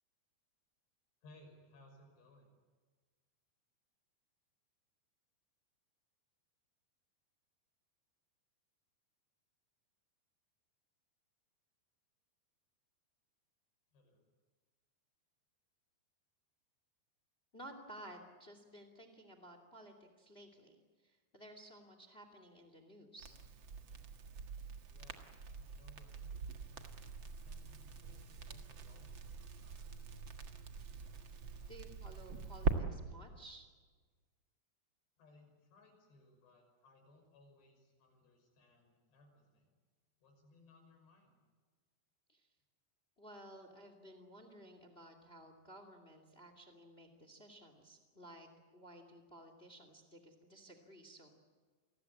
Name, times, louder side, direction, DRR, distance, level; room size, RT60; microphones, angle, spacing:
voice 1, 1.2-2.5 13.9-14.3 24.9-25.3 25.6-26.7 27.4-30.1 35.2-39.7 40.2-41.4, left 2 dB, 75° left, 3 dB, 8.0 m, -64 dB
voice 2, 17.5-20.8 21.0-23.4 30.9-31.1 31.7-33.7 42.3-42.4 43.2-48.5 48.7-51.3, right 1 dB, 20° left, 8 dB, 1.9 m, -55 dB
Crackle, 23.2-32.7, right 5 dB, 70° right, 1.1 m, -43 dB
29.0 x 20.5 x 8.6 m, 1.4 s
omnidirectional pair, 4.9 m